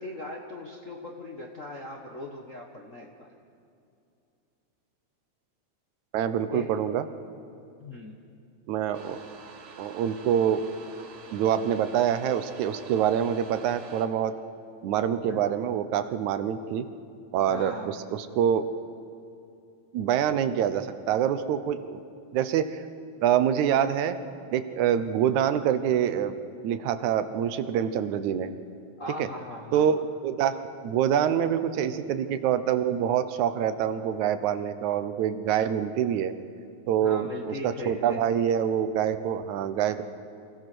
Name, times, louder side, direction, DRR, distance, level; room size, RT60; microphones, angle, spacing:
voice 1, 0.0-3.3 6.5-6.7 7.8-8.2 15.2-15.5 17.5-17.9 29.0-29.9 37.0-38.4, left 2 dB, 50° left, 0 dB, 0.9 m, -39 dB
voice 2, 6.1-7.0 8.7-9.2 9.8-10.6 11.3-14.3 14.8-16.9 17.3-18.7 19.9-22.0 22.3-22.8 23.2-24.2 24.5-26.3 26.6-28.5 29.2-29.3 29.7-30.5 30.8-36.3 36.9-40.0, right 9 dB, 80° right, 11 dB, 2.2 m, -26 dB
sound 1, 8.9-14.1, right 5 dB, 55° right, 1.9 m, -48 dB
28.0 x 16.0 x 6.1 m, 2.6 s
omnidirectional pair, 3.4 m